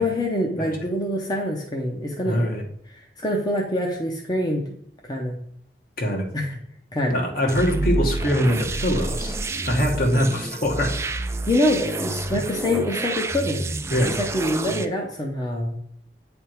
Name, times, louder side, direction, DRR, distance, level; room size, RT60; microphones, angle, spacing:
voice 1, 0.0-2.4 2.9-4.6 5.0-5.4 6.3-6.6 6.9-7.2 11.5-13.6 14.1-15.7, left 1 dB, 25° left, 0 dB, 0.7 m, -25 dB
voice 2, 2.2-2.6 6.0-6.3 7.1-9.4 9.6-11.0 13.9-14.2, equal, 50° left, 1 dB, 1.3 m, -23 dB
sound 1, 7.5-14.9, right 2 dB, 15° right, 0.3 m, -28 dB
8.9 x 3.5 x 4.5 m, 0.66 s
head